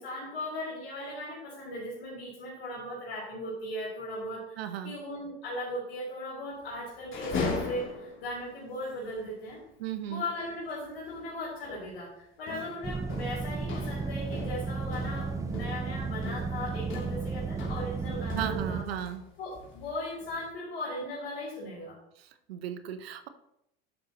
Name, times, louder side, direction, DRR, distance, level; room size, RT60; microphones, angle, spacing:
voice 1, 0.0-9.6 10.1-18.8 19.4-22.0, left 1 dB, 80° left, -7 dB, 3.9 m, -38 dB
voice 2, 4.6-5.0 9.8-10.2 18.3-19.3 22.2-23.3, right 10 dB, 80° right, 11 dB, 0.9 m, -36 dB
sound 1, 7.0-8.4 8.8-8.9 9.2-9.3 11.0-11.3 11.6-11.9 12.5-19.2 19.5-20.5, left 4 dB, 40° left, 3.0 m, -39 dB
sound 2, 12.8-18.8, right 4 dB, 10° right, 0.3 m, -34 dB
11.0 x 8.1 x 3.0 m, 0.78 s
hypercardioid pair, 75°, 30 cm